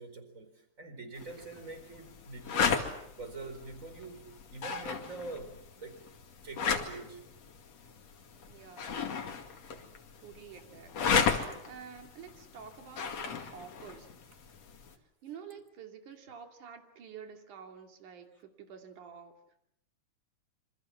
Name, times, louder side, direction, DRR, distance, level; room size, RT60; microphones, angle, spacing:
voice 1, 0.0-2.8 3.2-6.0 6.4-7.2 9.6-9.8 10.5-10.6, right 3 dB, 25° right, 8 dB, 4.5 m, -45 dB
sound 1, 1.2-15.0, left 6 dB, 60° left, 3.4 m, -35 dB
voice 2, 8.5-9.2 10.2-11.0 11.6-14.1 14.9-19.4, right 7 dB, 90° right, 5 dB, 4.0 m, -49 dB
27.0 x 26.5 x 7.4 m, 0.76 s
omnidirectional pair, 3.4 m